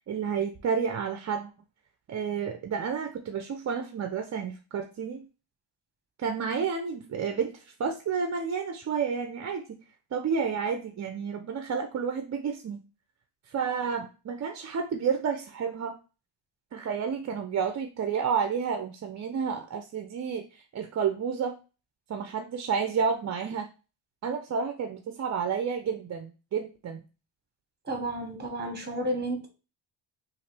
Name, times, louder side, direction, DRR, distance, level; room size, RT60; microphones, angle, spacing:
voice 1, 0.1-1.5 2.1-5.2 6.2-9.6 10.1-12.8 13.5-16.0 16.7-21.6 22.1-23.7 24.2-27.0, right 6 dB, 40° right, 6 dB, 0.4 m, -30 dB
voice 2, 27.8-29.5, right 1 dB, 20° right, 4 dB, 1.1 m, -32 dB
5.7 x 2.5 x 3.3 m, 0.32 s
wide cardioid pair, 160°, 47 cm